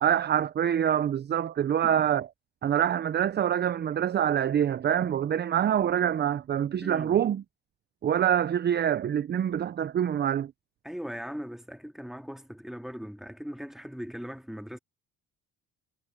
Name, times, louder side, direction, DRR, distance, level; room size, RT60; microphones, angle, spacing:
voice 1, 0.0-2.3 2.6-7.4 8.0-10.5, right 9 dB, 35° right, 0.5 m, -25 dB
voice 2, 6.8-7.2 10.8-14.8, equal, ahead, 2.5 m, -39 dB
cardioid pair, 100°, 31 cm